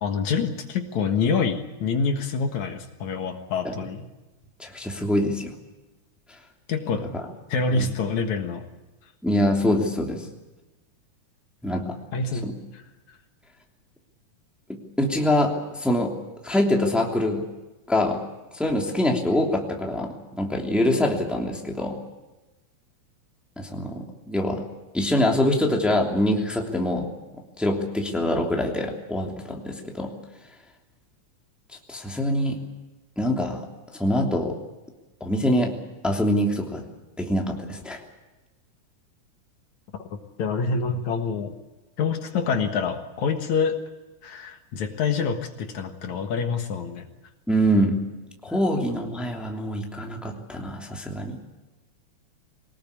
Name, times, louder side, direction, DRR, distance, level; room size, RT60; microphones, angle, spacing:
voice 1, 0.0-4.1 6.7-7.1 7.5-8.7 12.1-12.8 40.0-40.1 40.4-41.6 42.0-43.8 44.2-47.1, left 5 dB, 70° left, 6 dB, 2.8 m, -26 dB
voice 2, 4.6-5.5 7.1-7.2 7.7-7.9 9.2-10.2 11.6-12.0 12.4-12.5 14.7-16.1 16.4-17.4 17.9-18.2 18.5-22.0 23.6-24.6 24.9-27.1 27.6-30.1 31.9-32.6 33.2-33.6 33.9-34.6 35.2-35.7 36.0-36.8 37.2-38.0 47.5-48.0 48.4-51.4, left 1 dB, ahead, 0 dB, 2.6 m, -24 dB
23.5 x 19.5 x 8.5 m, 1.1 s
omnidirectional pair, 3.6 m